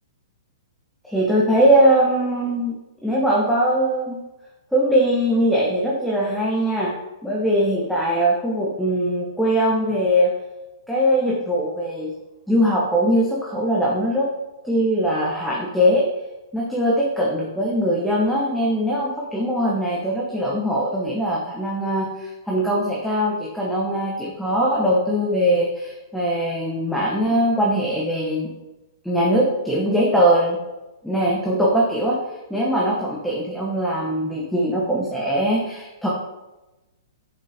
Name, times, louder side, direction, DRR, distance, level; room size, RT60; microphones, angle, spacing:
voice 1, 1.0-2.7 3.0-4.2 4.7-6.9 7.2-10.3 10.9-12.1 12.5-14.3 14.6-16.1 16.5-28.5 29.0-30.6 31.0-32.2 32.5-36.1, equal, ahead, -5 dB, 0.9 m, -21 dB
6.5 x 5.5 x 4.9 m, 1.0 s
hypercardioid pair, 160°, 2 cm